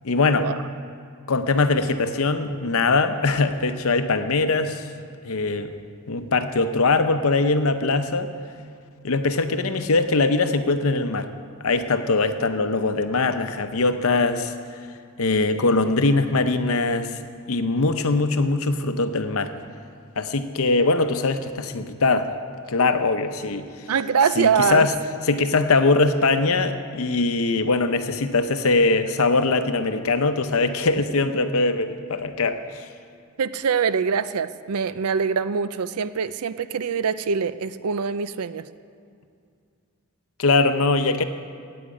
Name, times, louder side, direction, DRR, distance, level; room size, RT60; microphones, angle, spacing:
voice 1, 0.0-0.5 1.3-4.9 5.2-5.7 6.1-8.3 9.0-11.3 11.6-14.5 15.2-17.2 17.5-19.5 20.2-22.3 22.7-23.7 24.4-24.9 25.3-32.8 40.4-41.2, left 3 dB, 70° left, 9 dB, 0.7 m, -21 dB
voice 2, 23.9-24.9 33.4-38.7, right 6 dB, 80° right, 14 dB, 0.5 m, -23 dB
10.0 x 8.8 x 8.4 m, 2.4 s
head